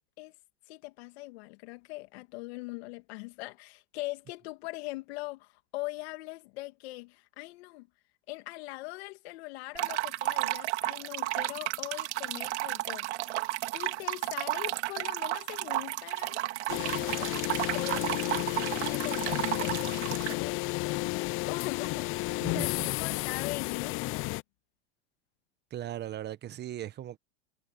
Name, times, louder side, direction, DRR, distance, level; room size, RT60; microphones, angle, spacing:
voice 1, 0.7-7.9 8.3-17.5 17.7-24.4, left 21 dB, 70° left, 2.3 m, -42 dB
sound 1, 9.8-20.3, right 17 dB, 80° right, 2.5 m, -33 dB
sound 2, 16.7-24.4, left 23 dB, 40° left, 0.5 m, -32 dB
voice 2, 22.4-22.9 25.7-27.2, right 12 dB, 30° right, 1.3 m, -38 dB
supercardioid pair, 125°, 33 cm